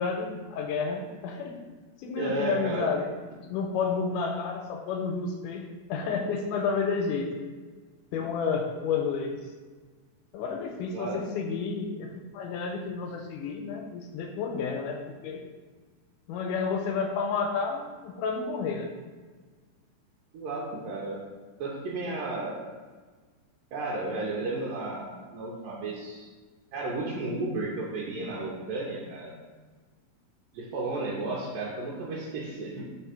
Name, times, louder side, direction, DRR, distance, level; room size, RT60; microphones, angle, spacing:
voice 1, 0.0-1.6 2.0-3.1 3.5-5.6 5.9-7.3 8.1-9.4 10.3-15.4 16.3-18.9, left 5 dB, 80° left, 3 dB, 2.1 m, -30 dB
voice 2, 2.2-2.9 10.9-11.2 20.3-21.3 21.6-22.6 23.7-26.3 26.7-29.3 30.5-32.9, right 2 dB, 85° right, -5 dB, 2.6 m, -33 dB
4.7 x 4.3 x 5.8 m, 1.4 s
omnidirectional pair, 3.9 m